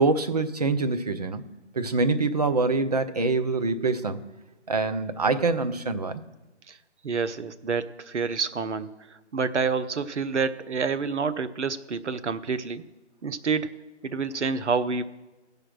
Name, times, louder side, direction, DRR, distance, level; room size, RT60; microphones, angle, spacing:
voice 1, 0.0-1.4 1.7-4.2 4.7-6.2, right 3 dB, 35° right, 0.5 m, -25 dB
voice 2, 7.0-8.9 9.3-12.8 13.2-13.7 14.0-15.0, right 5 dB, 75° right, 0.7 m, -28 dB
15.5 x 5.2 x 6.1 m
figure-of-eight pair, 140°, 35 cm